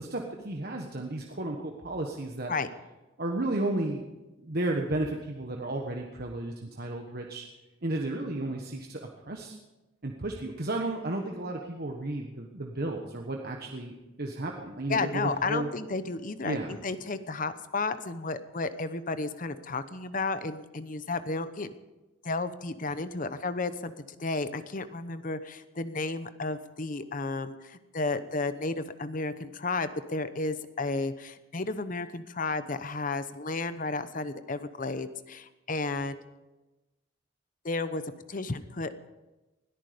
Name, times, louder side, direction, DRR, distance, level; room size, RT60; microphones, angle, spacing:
voice 1, 0.0-2.5 3.2-4.0 4.4-7.4 7.8-9.6 10.0-15.7 16.4-16.8, right 2 dB, 50° right, 1 dB, 1.3 m, -33 dB
voice 2, 14.9-21.7 22.2-23.9 24.2-36.2 37.6-38.0 38.3-39.1, left 3 dB, 40° left, 12 dB, 0.9 m, -32 dB
20.5 x 13.5 x 5.2 m, 1.1 s
head